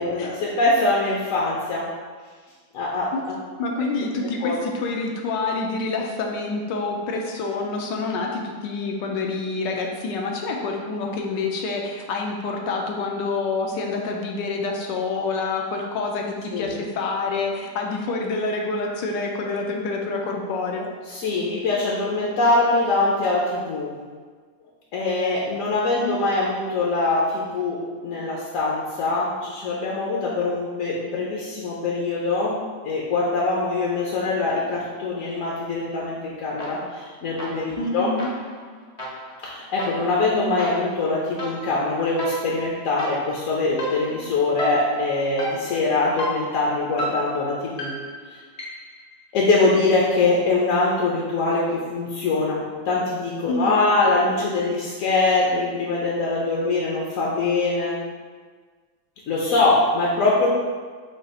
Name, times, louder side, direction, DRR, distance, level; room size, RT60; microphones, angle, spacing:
voice 1, 0.0-1.8 2.7-3.1 4.4-4.6 16.5-16.7 21.1-23.9 24.9-27.8 28.0-32.6 32.8-38.1 39.4-47.9 48.3-48.4 49.3-58.0 59.3-60.5, left 3 dB, 65° left, -5 dB, 0.9 m, -23 dB
voice 2, 3.6-20.9 37.8-38.3 53.5-54.0, left 3 dB, 80° left, 1 dB, 1.3 m, -27 dB
sound 1, 36.6-37.1 37.4-49.0, right 1 dB, 40° left, 0.5 m, -34 dB
5.2 x 2.4 x 4.1 m, 1.5 s
omnidirectional pair, 2.0 m